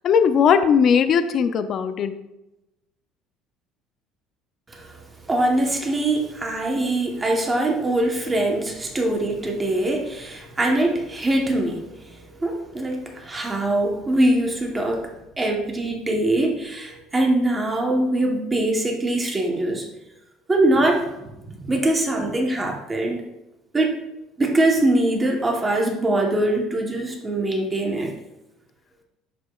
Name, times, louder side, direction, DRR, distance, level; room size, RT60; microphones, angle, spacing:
voice 1, 0.0-2.2, left 7 dB, 35° left, 10 dB, 0.4 m, -18 dB
voice 2, 5.2-19.9 20.5-21.1 21.5-23.2 23.7-24.0 24.4-28.1, right 1 dB, 15° right, 1 dB, 1.0 m, -23 dB
10.0 x 5.0 x 2.3 m, 0.93 s
cardioid pair, 170°, 0 cm